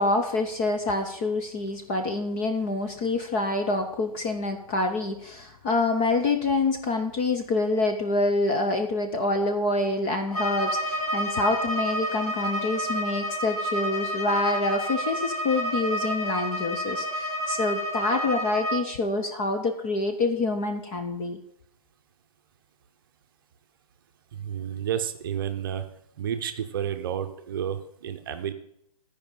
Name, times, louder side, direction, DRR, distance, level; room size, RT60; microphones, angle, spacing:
voice 1, 0.0-21.4, left 2 dB, 15° left, 5 dB, 0.4 m, -26 dB
Bowed string instrument, 10.3-18.9, right 1 dB, 90° left, 3.5 m, -29 dB
voice 2, 24.3-25.9 26.2-28.5, right 9 dB, 35° right, 8 dB, 0.7 m, -31 dB
12.0 x 5.0 x 5.3 m, 0.74 s
hypercardioid pair, 160°, 19 cm